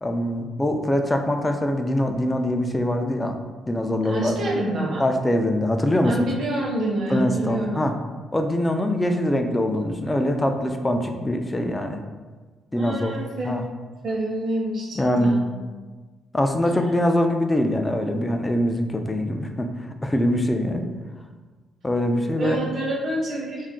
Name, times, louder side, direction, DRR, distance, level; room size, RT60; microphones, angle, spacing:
voice 1, 0.0-3.4 3.7-4.4 5.0-6.3 7.1-7.9 8.3-12.0 12.7-13.1 13.4-13.6 14.9-15.4 16.3-20.9 21.8-22.6, left 1 dB, 15° left, 5 dB, 0.3 m, -23 dB
voice 2, 4.0-5.0 6.0-7.9 12.7-13.6 14.0-15.4 22.4-23.7, right 1 dB, 55° right, -3 dB, 0.8 m, -27 dB
2.4 x 2.1 x 3.6 m, 1.3 s
cardioid pair, 90°, 0 cm